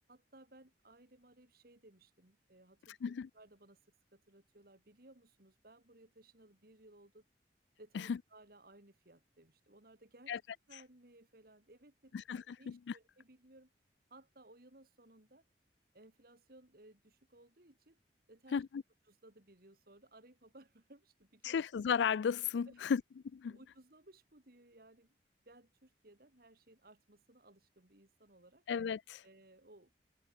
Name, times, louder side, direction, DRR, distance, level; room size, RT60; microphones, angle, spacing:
voice 1, 0.1-7.2 7.8-13.7 14.1-15.4 15.9-18.0 18.3-18.6 19.1-21.6 22.7-23.0 23.5-25.2 25.5-28.6 29.2-29.9, right 1 dB, 55° right, 2.7 m, -61 dB
voice 2, 12.1-12.8 18.5-18.8 21.4-23.0 23.3-23.6 28.7-29.2, left 7 dB, 85° left, 0.4 m, -34 dB
head